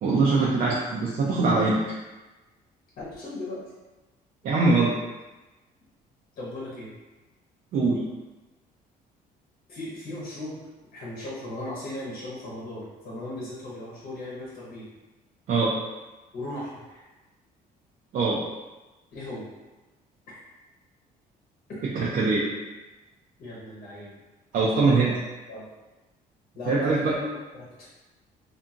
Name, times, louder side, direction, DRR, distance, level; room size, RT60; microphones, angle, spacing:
voice 1, 0.0-1.8 4.4-4.9 7.7-8.1 15.5-15.8 18.1-18.4 22.0-22.5 24.5-25.1 26.7-27.1, right 3 dB, 55° right, -5 dB, 0.5 m, -22 dB
voice 2, 3.0-3.6 6.4-7.0 9.7-10.6 10.9-14.9 16.3-17.0 19.1-19.5 20.3-20.4 23.4-24.1 24.7-25.2 25.5-25.7 26.5-27.9, left 1 dB, 60° left, -6 dB, 0.9 m, -37 dB
2.7 x 2.5 x 2.4 m, 1.1 s
cardioid pair, 110°, 17 cm